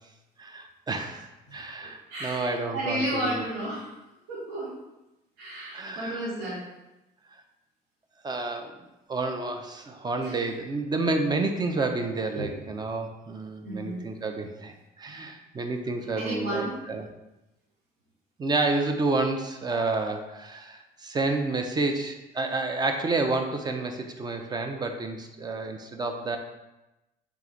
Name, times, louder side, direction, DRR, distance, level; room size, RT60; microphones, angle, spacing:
voice 1, 0.4-3.4 5.7-6.3 8.2-8.8 9.1-17.1 18.4-26.4, right 3 dB, 25° right, 5 dB, 0.4 m, -30 dB
voice 2, 1.8-3.9 4.3-4.7 5.4-6.6 10.2-10.4 12.3-12.5 13.6-14.0 16.1-16.8, right 1 dB, 85° right, -7 dB, 1.5 m, -32 dB
3.4 x 3.1 x 3.8 m, 0.98 s
cardioid pair, 110°, 17 cm